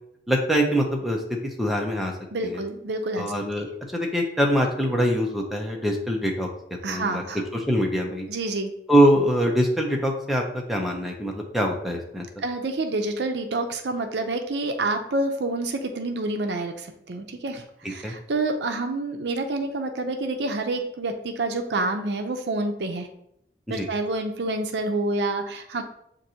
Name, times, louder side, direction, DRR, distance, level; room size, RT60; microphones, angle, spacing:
voice 1, 0.3-1.2 1.6-2.1 2.4-2.6 3.2-3.7 3.9-6.5 6.9-7.2 7.5-8.3 8.9-10.4 10.7-12.3 17.8-18.1 23.7-23.9, equal, ahead, 0 dB, 0.6 m, -23 dB
voice 2, 2.3-3.3 6.8-7.4 8.3-8.7 12.4-23.1 23.7-25.8, right 2 dB, 70° right, 5 dB, 0.5 m, -28 dB
7.4 x 2.6 x 2.8 m, 0.73 s
head